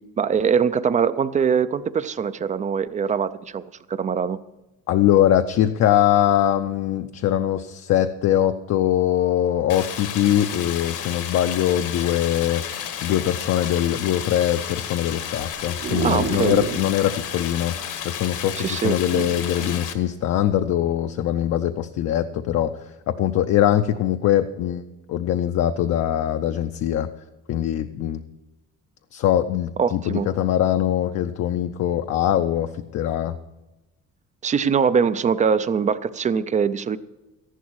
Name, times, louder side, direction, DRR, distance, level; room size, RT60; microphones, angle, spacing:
voice 1, 0.2-3.6 3.9-4.4 16.0-16.6 18.6-19.0 29.8-30.3 34.4-37.0, right 6 dB, 25° right, 15 dB, 0.3 m, -22 dB
voice 2, 4.9-12.6 13.0-17.8 18.0-22.8 23.1-24.8 25.1-27.1 27.5-28.2 29.1-33.4, left 11 dB, 55° left, 7 dB, 0.5 m, -22 dB
Stream, 9.7-19.9, left 9 dB, 75° left, 1.4 m, -32 dB
sound 1, 15.4-16.9 17.4-17.5 17.7-17.8 18.9-19.8 20.5-20.7, right 7 dB, 40° right, 0.8 m, -31 dB
14.0 x 11.0 x 4.7 m, 1.0 s
cardioid pair, 165°, 31 cm